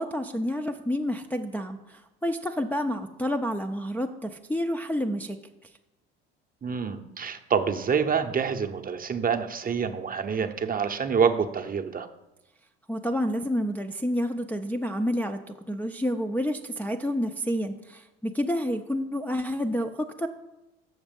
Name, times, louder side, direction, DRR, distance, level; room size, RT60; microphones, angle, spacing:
voice 1, 0.0-5.4 12.9-20.3, equal, 5° left, 2 dB, 0.5 m, -29 dB
voice 2, 6.6-12.1, right 6 dB, 25° right, 6 dB, 0.8 m, -27 dB
6.9 x 6.5 x 5.2 m, 0.98 s
hypercardioid pair, 65°, 32 cm